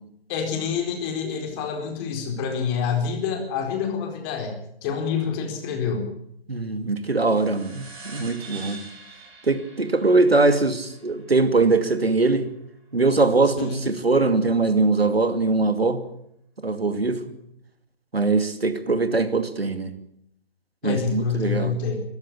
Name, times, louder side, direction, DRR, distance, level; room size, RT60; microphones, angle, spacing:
voice 1, 0.3-4.6 4.8-6.1 13.6-13.8 20.8-22.0, left 6 dB, 25° left, 4 dB, 4.3 m, -27 dB
voice 2, 6.5-8.8 9.5-12.5 12.9-16.0 16.6-17.2 18.1-19.9 20.8-21.7, right 3 dB, 75° right, 9 dB, 2.6 m, -21 dB
sound 1, 7.2-12.1, right 4 dB, 15° right, 5.8 m, -44 dB
22.0 x 15.0 x 8.5 m, 0.74 s
figure-of-eight pair, 135°, 30 cm